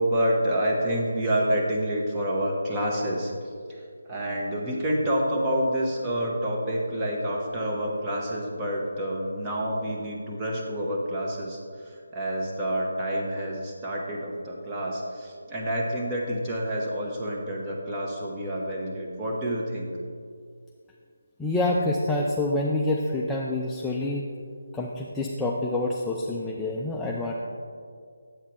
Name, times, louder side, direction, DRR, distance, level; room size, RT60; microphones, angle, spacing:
voice 1, 0.0-3.3 3.7-19.9, equal, 15° right, -3 dB, 1.1 m, -28 dB
voice 2, 21.4-24.2 24.7-27.3, left 2 dB, 5° left, -3 dB, 0.4 m, -27 dB
8.1 x 8.1 x 3.0 m, 2.2 s
figure-of-eight pair, 155°, 0 cm